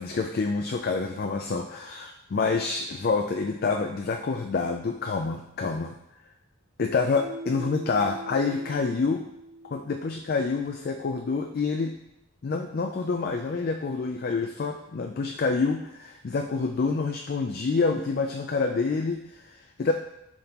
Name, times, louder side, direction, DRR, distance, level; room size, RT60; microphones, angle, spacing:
voice 1, 0.0-5.9 6.8-9.3 9.7-11.9 12.4-19.9, left 4 dB, 45° left, 4 dB, 0.4 m, -27 dB
Mallet percussion, 7.2-10.4, right 1 dB, 80° right, 0.6 m, -42 dB
10.5 x 3.7 x 2.9 m, 0.84 s
head